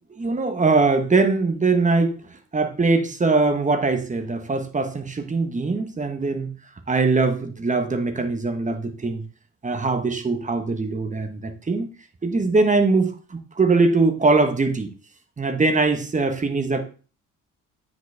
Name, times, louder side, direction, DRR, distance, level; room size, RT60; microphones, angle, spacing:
voice 1, 0.1-2.1 2.5-6.5 6.9-9.2 9.6-11.9 12.2-14.9 15.4-16.8, right 3 dB, 25° right, 8 dB, 1.3 m, -21 dB
9.0 x 5.3 x 3.5 m, 0.37 s
cardioid pair, 90°, 30 cm